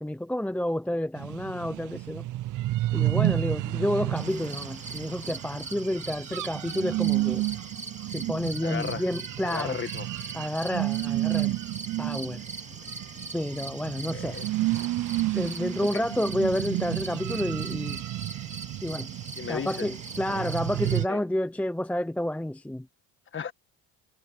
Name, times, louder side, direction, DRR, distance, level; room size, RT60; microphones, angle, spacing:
voice 1, 0.0-2.3 2.9-7.4 8.1-9.8 10.3-11.5 12.0-12.4 13.3-14.4 15.3-18.0 18.8-19.1 19.5-22.9, left 1 dB, 5° left, 0.8 m, -30 dB
sound 1, 1.2-21.1, right 17 dB, 55° right, 0.6 m, -31 dB
sound 2, 4.2-21.0, right 3 dB, 20° right, 2.3 m, -42 dB
voice 2, 8.6-9.0 9.4-10.1 14.1-14.5 15.9-16.0 19.4-19.9 20.3-20.5 20.8-21.2 23.3-23.5, left 7 dB, 30° left, 1.8 m, -35 dB
cardioid pair, 110°, 38 cm